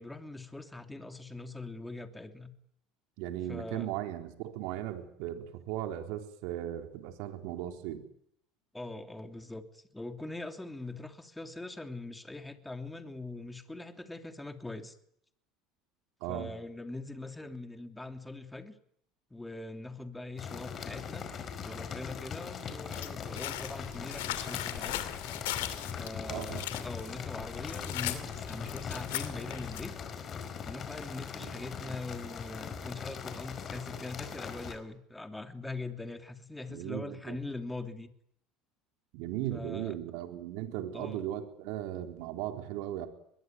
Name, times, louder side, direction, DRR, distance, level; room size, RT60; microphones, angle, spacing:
voice 1, 0.0-2.5 3.5-3.9 8.7-15.0 16.3-18.7 19.3-21.3 21.6-25.1 26.0-29.9 30.6-38.1 39.5-40.0 40.9-41.3, left 2 dB, 10° left, 7 dB, 3.1 m, -42 dB
voice 2, 3.2-8.0 16.2-16.5 26.3-26.6 31.4-31.6 36.7-37.4 39.1-43.1, right 12 dB, 70° right, 6 dB, 4.0 m, -37 dB
sound 1, 20.4-34.8, left 6 dB, 40° left, 5.1 m, -40 dB
sound 2, 22.9-30.0, left 14 dB, 85° left, 2.7 m, -39 dB
23.5 x 21.5 x 9.5 m, 0.70 s
supercardioid pair, 95°, 0 cm